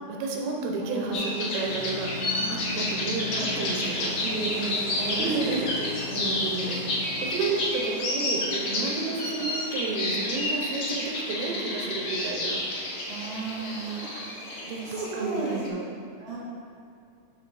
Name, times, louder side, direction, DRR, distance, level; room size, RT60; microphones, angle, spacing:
voice 1, 0.1-2.1 2.5-4.1 5.2-5.7 6.7-7.0 7.3-12.6 14.6-15.9, right 3 dB, 85° right, 0 dB, 2.8 m, -31 dB
voice 2, 0.8-1.3 2.1-2.5 3.3-3.5 4.2-6.7 13.1-14.2 14.8-15.6 16.2-16.4, right 3 dB, 45° right, -8 dB, 1.8 m, -34 dB
sound 1, 1.1-15.7, left 1 dB, 80° left, 1.1 m, -30 dB
sound 2, 1.7-7.7, left 3 dB, 65° left, 2.5 m, -39 dB
11.5 x 4.6 x 3.3 m, 2.4 s
omnidirectional pair, 4.4 m